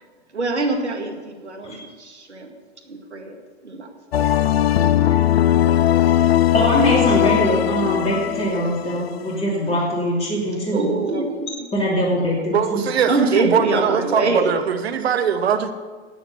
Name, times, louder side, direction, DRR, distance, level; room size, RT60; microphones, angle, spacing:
voice 1, 0.3-2.5 2.9-3.4 3.6-3.9 4.2-4.3 5.3-6.3 7.4-7.9 10.7-11.7 13.1-14.5, right 3 dB, 80° right, 2 dB, 2.1 m, -25 dB
sound 1, 4.1-9.5, left 12 dB, 60° left, 0.6 m, -19 dB
voice 2, 6.5-10.9 11.7-12.9, equal, 20° left, -4 dB, 2.9 m, -22 dB
voice 3, 12.5-15.7, right 7 dB, 65° right, 8 dB, 1.1 m, -21 dB
12.5 x 8.4 x 7.0 m, 1.4 s
figure-of-eight pair, 95°, 34 cm